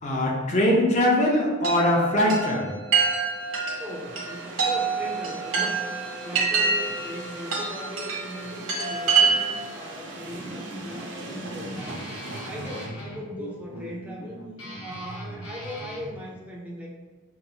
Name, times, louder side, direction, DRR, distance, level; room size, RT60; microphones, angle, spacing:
voice 1, 0.0-2.8, left 1 dB, 35° left, -2 dB, 0.7 m, -22 dB
Chime, 1.6-9.8, right 5 dB, 90° right, 1.1 m, -26 dB
sound 1, 3.2-12.9, right 2 dB, 60° right, 0.5 m, -41 dB
voice 2, 3.8-5.8 6.1-12.0 12.4-14.4 14.8-16.9, equal, 5° right, -2 dB, 0.5 m, -38 dB
Guitar, 10.3-16.1, equal, 85° left, 1.1 m, -40 dB
5.6 x 2.1 x 2.8 m, 1.3 s
head